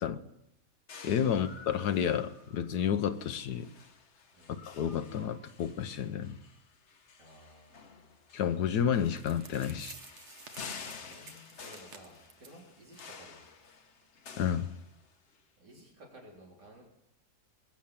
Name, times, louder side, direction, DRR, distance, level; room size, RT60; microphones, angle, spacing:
sound 1, 0.9-15.4, left 5 dB, 50° left, 1.2 m, -51 dB
voice 1, 1.0-3.7 4.7-6.4 8.3-9.9 14.4-14.7, left 8 dB, 75° left, 12 dB, 1.3 m, -30 dB
voice 2, 7.2-8.1 10.8-13.4 15.6-16.8, equal, 85° right, -2 dB, 4.3 m, -55 dB
sound 2, 8.9-9.0 9.2-12.6 12.9-13.1 13.4-13.5 14.0-14.1, right 5 dB, 50° right, 1.3 m, -52 dB
21.5 x 7.5 x 7.2 m, 0.85 s
omnidirectional pair, 1.8 m